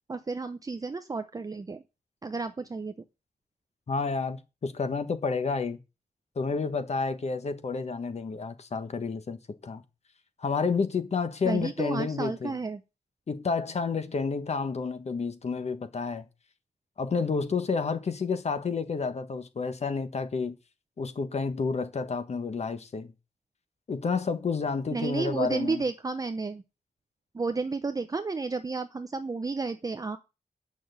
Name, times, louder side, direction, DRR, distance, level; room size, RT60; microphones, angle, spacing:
voice 1, 0.1-1.8 2.2-2.9 11.4-12.8 24.9-26.6 27.3-30.2, right 4 dB, 25° right, 0.6 m, -32 dB
voice 2, 3.9-5.8 6.3-9.8 10.4-12.6 13.3-16.3 17.0-20.5 21.0-23.1 23.9-25.8, left 4 dB, 45° left, 1.4 m, -30 dB
9.3 x 6.3 x 8.0 m
wide cardioid pair, 160°, 15 cm